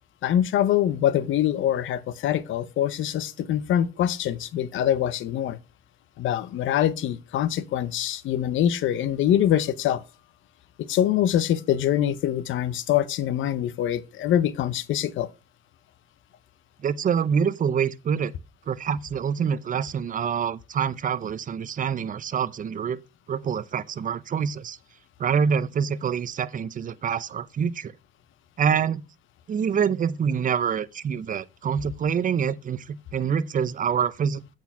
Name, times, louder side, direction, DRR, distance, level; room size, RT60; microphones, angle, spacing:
voice 1, 0.2-5.6 6.2-10.0 10.8-15.3, left 11 dB, 80° left, 0.7 m, -24 dB
voice 2, 16.8-18.3 18.7-23.0 23.3-24.8 25.2-27.9 28.6-29.0 29.5-34.5, right 7 dB, 40° right, 0.6 m, -26 dB
8.2 x 4.5 x 5.6 m
cardioid pair, 90°, 20 cm